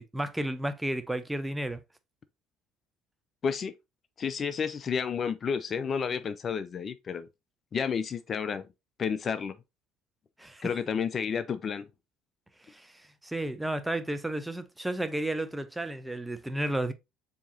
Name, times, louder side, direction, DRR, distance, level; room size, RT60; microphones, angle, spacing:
voice 1, 0.0-1.8 10.4-10.7 12.6-16.9, right 1 dB, 5° right, 0.6 m, -32 dB
voice 2, 3.4-3.7 4.2-7.3 7.7-8.7 9.0-9.5 10.6-11.9, left 6 dB, 40° left, 0.4 m, -31 dB
6.9 x 2.9 x 2.7 m
hypercardioid pair, 60°, 0 cm